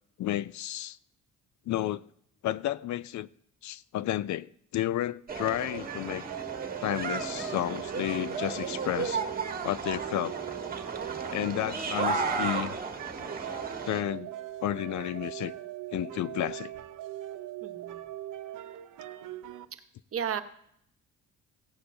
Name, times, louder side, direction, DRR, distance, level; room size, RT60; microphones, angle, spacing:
voice 1, 0.2-1.0 1.7-2.0 2.4-3.3 3.6-6.2 6.8-9.2 9.6-10.4 11.3-12.8 13.8-14.3 14.6-15.5 15.9-16.7, left 13 dB, 65° left, 0.5 m, -31 dB
sound 1, 5.3-14.0, right 4 dB, 30° right, 1.5 m, -34 dB
sound 2, 5.4-19.7, right 13 dB, 75° right, 0.8 m, -41 dB
voice 2, 17.6-18.0 20.1-20.4, right 8 dB, 45° right, 1.0 m, -33 dB
16.0 x 11.0 x 2.7 m
cardioid pair, 95°, 32 cm